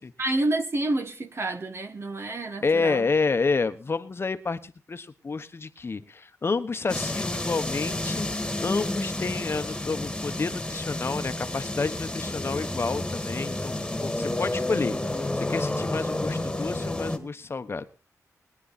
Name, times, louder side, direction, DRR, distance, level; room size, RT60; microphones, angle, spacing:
voice 1, 0.2-3.1, right 2 dB, 45° right, 1.8 m, -28 dB
voice 2, 2.6-8.3 8.6-14.9 15.4-17.8, left 4 dB, 40° left, 1.1 m, -29 dB
sound 1, 6.9-17.2, left 1 dB, 10° left, 2.1 m, -30 dB
21.5 x 9.8 x 4.3 m
cardioid pair, 80°, 6 cm